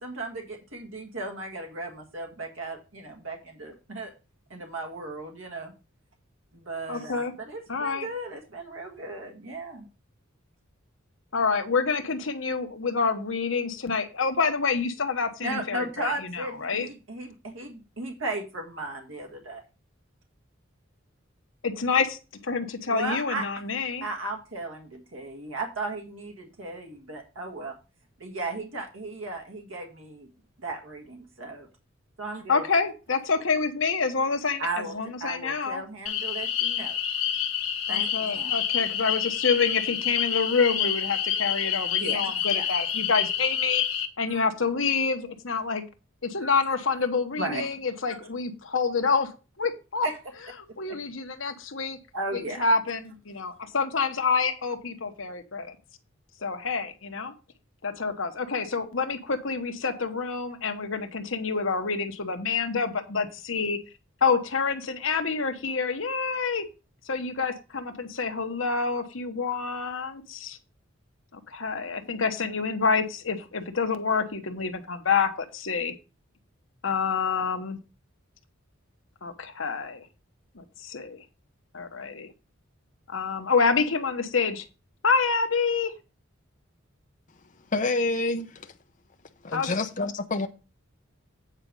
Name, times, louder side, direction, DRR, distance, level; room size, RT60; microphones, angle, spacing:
voice 1, 0.0-4.1 4.5-5.7 6.5-9.9 15.4-19.6 22.9-23.4 24.0-27.7 28.2-30.3 30.6-31.7 32.2-32.6 34.6-37.0 37.9-38.6 42.0-42.7 44.3-44.4 46.4-46.5 47.4-47.7 50.0-50.2 50.9-51.0 52.1-52.6, right 2 dB, 75° right, 1.6 m, -36 dB
voice 2, 6.9-7.3 7.7-8.1 11.3-16.9 21.6-22.2 22.4-24.1 32.5-35.8 37.9-43.8 44.2-45.8 46.2-49.3 49.6-50.1 50.8-52.0 52.3-55.7 56.4-57.3 57.8-63.8 64.2-66.6 67.1-70.6 71.3-75.9 76.8-77.8 79.2-80.1 80.5-81.2 81.7-82.3 83.1-84.7 85.0-85.9 89.5-89.7, left 5 dB, 75° left, 1.2 m, -27 dB
sound 1, 36.1-44.1, left 9 dB, 90° left, 1.3 m, -28 dB
voice 3, 87.7-88.7 89.4-90.5, left 2 dB, 40° left, 0.7 m, -27 dB
8.9 x 5.0 x 5.4 m
head